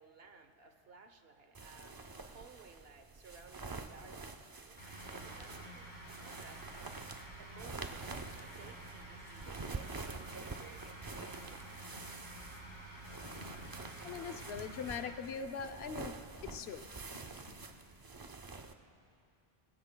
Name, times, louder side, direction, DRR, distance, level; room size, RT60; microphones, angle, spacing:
voice 1, 0.0-7.0 7.4-8.0 8.5-11.8, right 5 dB, 75° right, 6 dB, 1.2 m, -58 dB
sound 1, 1.5-18.7, right 3 dB, 30° right, 0.4 m, -47 dB
sound 2, 4.8-15.1, right 1 dB, 45° left, 4.9 m, -50 dB
Coin (dropping), 10.6-19.2, left 2 dB, 70° left, 1.9 m, -60 dB
voice 2, 14.0-16.9, left 6 dB, 85° left, 8 dB, 1.0 m, -42 dB
24.0 x 19.5 x 2.2 m, 2.6 s
omnidirectional pair, 1.0 m